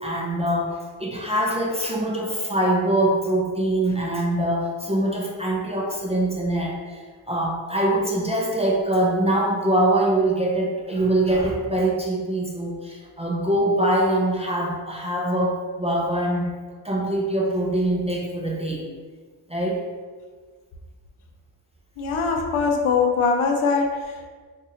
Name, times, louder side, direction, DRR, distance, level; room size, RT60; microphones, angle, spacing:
voice 1, 0.0-16.5 16.8-18.8 19.5-19.9, right 1 dB, 15° right, -3 dB, 0.4 m, -23 dB
voice 2, 22.0-24.3, left 5 dB, 75° left, 2 dB, 0.6 m, -22 dB
2.7 x 2.6 x 4.1 m, 1.5 s
wide cardioid pair, 100°, 49 cm